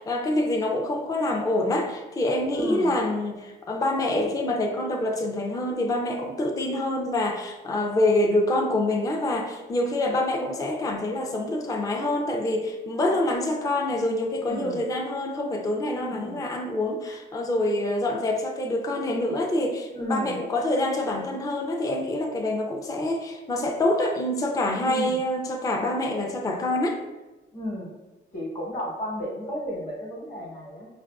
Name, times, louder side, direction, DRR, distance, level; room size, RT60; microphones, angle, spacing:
voice 1, 0.0-27.0, left 1 dB, 20° left, 2 dB, 0.4 m, -26 dB
voice 2, 2.5-2.9 14.4-14.8 16.0-16.4 19.9-20.4 24.8-25.2 27.5-27.9 28.3-30.9, left 1 dB, 40° left, -2 dB, 1.0 m, -33 dB
4.4 x 2.4 x 2.2 m, 1.1 s
cardioid pair, 90°, 20 cm